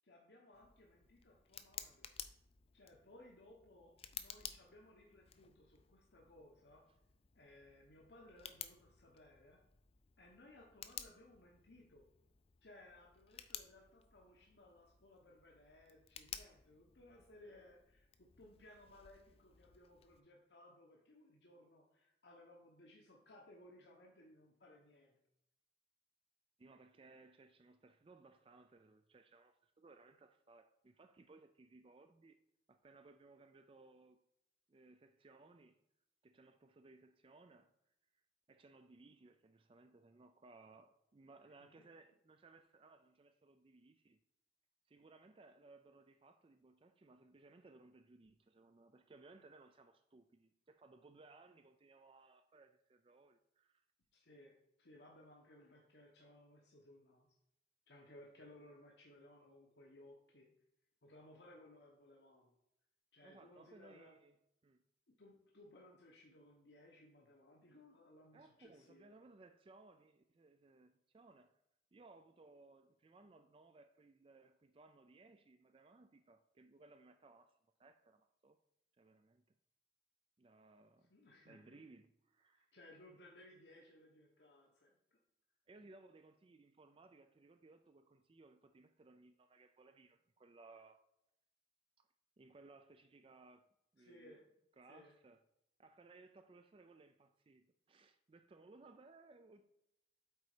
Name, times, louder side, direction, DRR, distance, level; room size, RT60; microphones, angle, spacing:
voice 1, 0.0-2.1 2.7-6.8 7.3-9.6 10.2-12.0 12.6-25.2 54.1-57.3 57.9-60.5 61.0-62.5 63.1-64.1 65.2-69.1 81.1-81.8 82.5-84.9 94.0-94.4 94.9-95.1, left 1 dB, 70° left, 1.1 m, -62 dB
Tick, 0.5-20.2, left 9 dB, 35° left, 0.4 m, -55 dB
voice 2, 26.6-32.4 32.7-34.2 34.7-35.8 36.2-37.7 38.1-38.2 38.5-44.2 44.9-53.8 63.2-64.3 64.6-64.8 68.3-71.6 71.9-78.6 78.9-79.4 80.4-81.1 81.4-82.8 85.7-91.0 92.0-92.1 92.4-94.4 94.8-95.4 95.8-99.7, right 3 dB, 30° right, 0.4 m, -63 dB
8.1 x 4.0 x 4.9 m
head